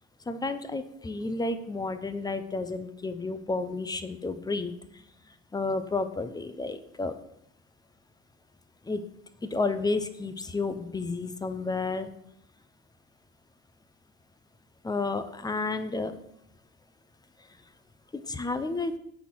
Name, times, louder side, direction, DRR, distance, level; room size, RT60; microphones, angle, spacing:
voice 1, 0.3-4.7 5.5-7.1 8.9-9.0 9.5-12.1 14.8-16.1 18.3-18.9, left 3 dB, 15° left, 11 dB, 0.6 m, -31 dB
8.1 x 4.2 x 6.1 m, 0.76 s
cardioid pair, 130°, 29 cm